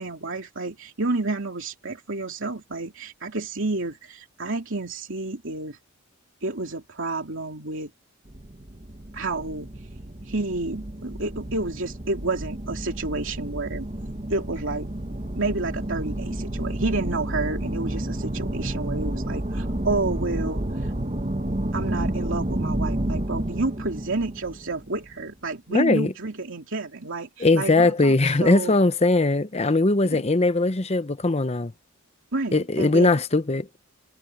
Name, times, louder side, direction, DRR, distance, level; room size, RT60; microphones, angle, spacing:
voice 1, 0.0-5.8 6.4-7.9 9.1-9.7 10.3-13.9 14.3-14.9 15.3-20.9 21.7-28.1 28.4-28.7 30.1-30.2 32.3-33.2, right 2 dB, 60° right, 3.0 m, -30 dB
sound 1, 8.3-25.3, right 1 dB, 30° right, 1.3 m, -30 dB
voice 2, 25.7-26.1 27.4-31.7 32.5-33.7, left 2 dB, 30° left, 0.8 m, -20 dB
head